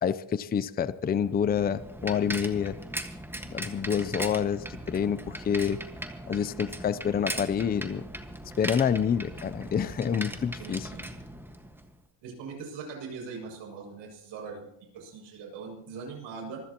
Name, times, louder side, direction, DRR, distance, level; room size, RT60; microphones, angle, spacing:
voice 1, 0.0-2.8 3.5-5.8 6.3-8.0 8.6-10.9, left 7 dB, 20° left, 14 dB, 0.5 m, -28 dB
Bicycle, 1.0-11.9, right 1 dB, 5° right, 1.5 m, -39 dB
voice 2, 10.6-11.1 12.2-14.7 14.9-16.6, right 5 dB, 65° right, 0 dB, 7.1 m, -41 dB
25.5 x 15.5 x 3.0 m, 0.80 s
cardioid pair, 120°, 47 cm